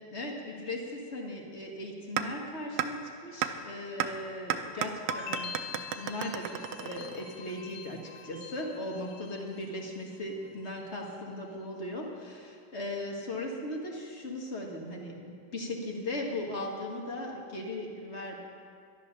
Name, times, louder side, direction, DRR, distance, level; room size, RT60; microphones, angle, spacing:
voice 1, 0.1-18.4, left 1 dB, 35° left, 0 dB, 1.7 m, -38 dB
sound 1, 2.2-2.3 2.8-2.9 3.4-3.5 4.0-4.1 4.5-7.4, right 11 dB, 70° right, 1.1 m, -31 dB
sound 2, 5.1-10.1 10.4-11.1, left 5 dB, 85° left, 1.7 m, -45 dB
11.5 x 11.0 x 6.6 m, 2.3 s
omnidirectional pair, 2.1 m